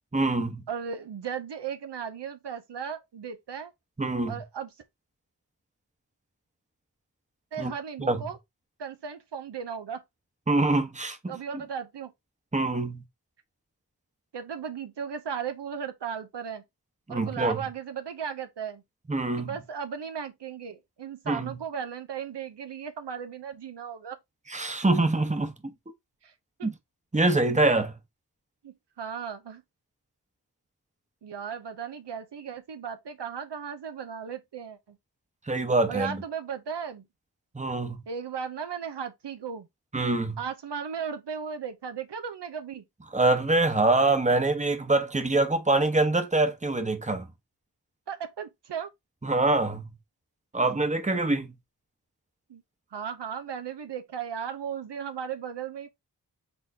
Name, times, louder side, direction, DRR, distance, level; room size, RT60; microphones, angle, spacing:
voice 1, 0.1-0.6 4.0-4.4 7.6-7.7 8.0-8.2 10.5-11.4 12.5-13.0 17.1-17.6 19.1-19.5 21.3-21.5 24.5-25.7 26.6-26.7 27.1-27.9 35.5-36.2 37.5-38.0 39.9-40.4 43.1-47.3 49.2-49.8 50.5-51.5, right 2 dB, 15° right, 0.9 m, -25 dB
voice 2, 0.7-3.7 4.3-4.7 7.5-8.4 8.8-10.0 11.3-12.1 14.3-16.6 17.1-18.8 19.4-24.2 26.2-26.3 26.6-26.7 28.6-29.6 31.2-35.0 35.9-37.0 38.1-39.7 40.4-42.8 48.1-48.9 52.5-52.6 52.9-55.9, right 7 dB, 80° right, 0.7 m, -36 dB
4.3 x 3.6 x 2.7 m
wide cardioid pair, 45°, 41 cm